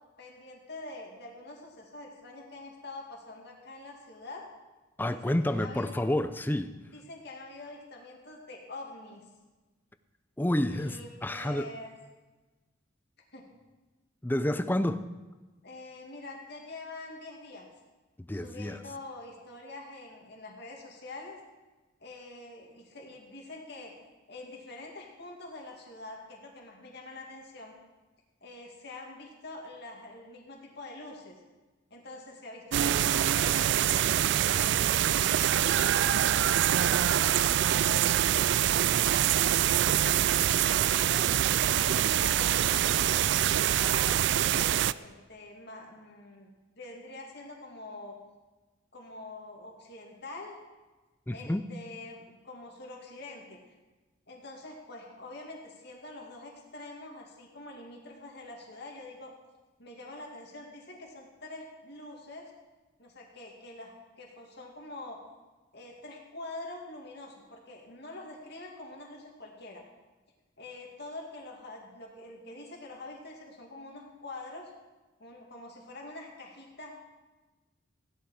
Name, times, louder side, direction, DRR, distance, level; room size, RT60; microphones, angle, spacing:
voice 1, 0.2-4.5 5.1-6.1 6.9-9.2 10.6-11.9 13.3-13.5 15.6-17.7 18.3-21.4 22.0-23.9 24.3-27.7 28.4-31.4 31.9-33.6 33.9-38.5 39.2-39.6 39.9-41.3 41.7-43.2 43.5-46.5 46.8-48.2 48.9-50.6 51.3-53.6 54.3-59.3 59.8-62.5 63.0-65.2 65.7-69.8 70.6-74.7 75.2-76.9, left 2 dB, 55° left, 0 dB, 2.4 m, -45 dB
voice 2, 5.0-6.7 10.4-11.7 14.2-15.1 18.2-18.8 51.3-51.7, left 1 dB, 10° left, 11 dB, 0.5 m, -29 dB
sound 1, 32.7-44.9, right 11 dB, 60° right, 0.3 m, -25 dB
16.0 x 11.0 x 4.9 m, 1.2 s
head